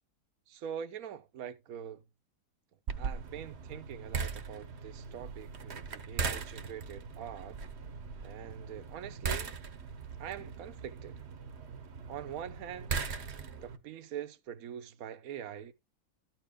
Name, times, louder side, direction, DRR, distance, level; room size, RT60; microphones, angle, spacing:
voice 1, 0.5-2.0 3.0-7.6 8.2-9.6 10.2-11.2 12.1-12.9 13.6-15.7, right 9 dB, 65° right, 1.3 m, -43 dB
sound 1, 2.9-13.8, right 5 dB, 45° right, 1.2 m, -39 dB
13.0 x 4.5 x 5.0 m
omnidirectional pair, 1.7 m